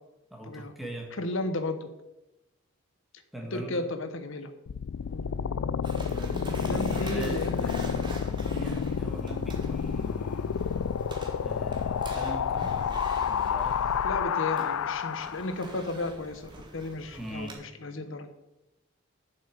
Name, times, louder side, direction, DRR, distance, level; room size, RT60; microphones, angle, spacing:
voice 1, 0.3-1.1 3.3-3.9 6.1-10.7 11.4-12.7 13.3-14.0 17.2-17.6, right 1 dB, ahead, 1 dB, 1.6 m, -40 dB
voice 2, 1.2-1.9 3.5-4.5 5.1-5.3 6.6-7.7 14.0-18.3, left 2 dB, 65° left, 9 dB, 1.1 m, -34 dB
sound 1, 4.7-15.6, left 7 dB, 85° left, 0.4 m, -30 dB
sound 2, 5.8-17.5, right 2 dB, 20° right, 1.5 m, -45 dB
7.8 x 6.3 x 8.0 m, 0.98 s
head